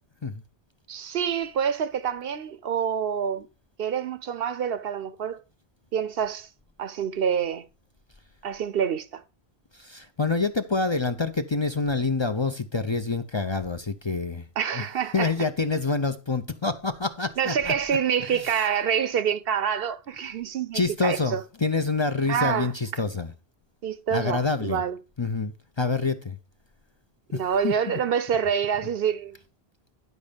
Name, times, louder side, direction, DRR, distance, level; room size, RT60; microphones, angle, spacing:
voice 1, 0.9-3.5 3.8-5.4 5.9-6.5 6.8-7.7 8.4-9.2 14.6-15.3 17.4-21.4 22.3-22.7 23.8-25.0 27.3-29.4, right 8 dB, 70° right, 0.9 m, -27 dB
voice 2, 9.7-14.4 14.7-14.8 15.1-17.7 18.3-18.5 20.7-23.3 24.1-24.8 25.2-26.4 27.3-28.0, left 4 dB, 30° left, 0.6 m, -27 dB
11.0 x 5.3 x 5.1 m
omnidirectional pair, 1.1 m